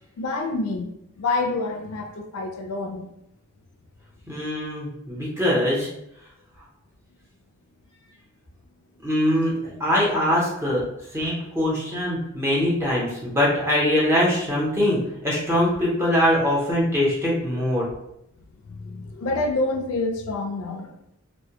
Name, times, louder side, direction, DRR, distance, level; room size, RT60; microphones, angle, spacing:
voice 1, 0.2-3.1 18.7-20.9, left 2 dB, 75° left, 3 dB, 0.4 m, -27 dB
voice 2, 4.3-5.9 9.0-10.8 11.1-17.9, left 1 dB, 10° right, -6 dB, 0.6 m, -22 dB
2.1 x 2.1 x 2.8 m, 0.79 s
head